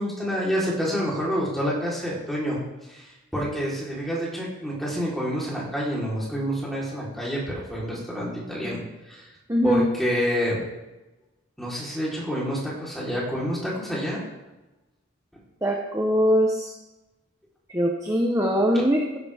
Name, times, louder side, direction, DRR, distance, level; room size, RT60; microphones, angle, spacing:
voice 1, 0.0-8.8 9.1-9.3 9.6-10.6 11.6-14.2, equal, ahead, -6 dB, 3.8 m, -28 dB
voice 2, 9.5-9.8 15.6-16.7 17.7-19.2, equal, 15° right, 0 dB, 1.0 m, -22 dB
16.0 x 10.5 x 3.6 m, 1.0 s
head